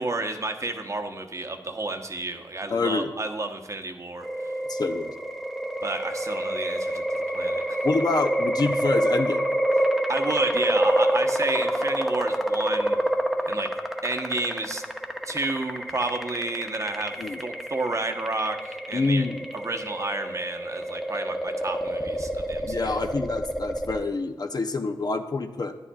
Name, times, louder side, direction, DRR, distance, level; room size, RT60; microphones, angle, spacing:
voice 1, 0.0-4.5 5.8-7.6 10.1-13.0 13.5-13.7 14.0-14.8 15.2-19.2 19.5-23.0, right 2 dB, 35° right, 5 dB, 0.9 m, -31 dB
voice 2, 2.7-3.1 4.7-5.1 7.8-9.6 17.2-17.4 18.9-19.5 22.6-25.8, left 3 dB, 50° left, 7 dB, 0.6 m, -27 dB
sound 1, 4.2-24.0, right 1 dB, ahead, 0.8 m, -27 dB
10.0 x 9.6 x 2.3 m, 1.1 s
cardioid pair, 50°, 9 cm